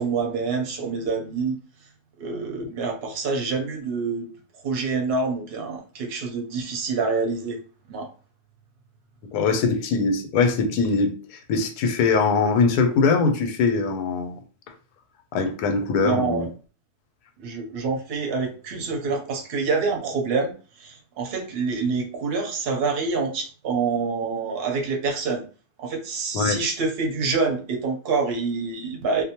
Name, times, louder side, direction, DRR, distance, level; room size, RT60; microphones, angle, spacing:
voice 1, 0.0-1.6 2.2-4.3 4.6-7.6 7.9-8.1 16.0-16.5 17.4-25.4 25.8-29.2, right 4 dB, 55° right, 0.7 m, -26 dB
voice 2, 9.3-14.4 15.3-16.5 26.3-26.6, left 4 dB, 90° left, 1.1 m, -22 dB
2.6 x 2.1 x 2.8 m
omnidirectional pair, 1.6 m